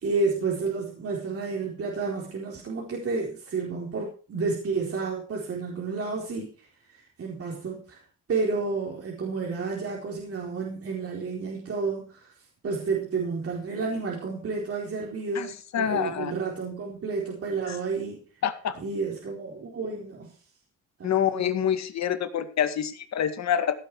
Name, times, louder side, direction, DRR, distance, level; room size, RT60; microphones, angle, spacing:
voice 1, 0.0-8.0 8.3-18.4 18.8-20.4 21.0-21.5, right 4 dB, 50° right, -2 dB, 4.4 m, -31 dB
voice 2, 15.7-16.3 17.7-17.8 18.4-18.8 21.0-23.7, left 9 dB, 65° left, 9 dB, 2.1 m, -26 dB
16.5 x 8.6 x 4.8 m, 0.40 s
cardioid pair, 90°, 30 cm